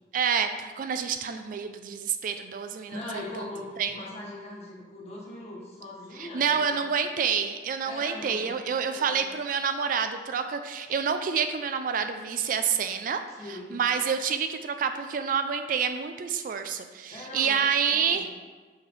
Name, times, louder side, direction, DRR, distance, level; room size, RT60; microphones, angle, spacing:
voice 1, 0.1-3.2 3.8-3.9 6.2-13.2 13.7-18.3, right 6 dB, 50° right, 8 dB, 0.3 m, -28 dB
voice 2, 2.9-6.9 7.8-9.2 13.4-13.8 17.1-18.2, left 1 dB, 35° left, -4 dB, 1.4 m, -41 dB
6.5 x 3.2 x 4.6 m, 1.4 s
head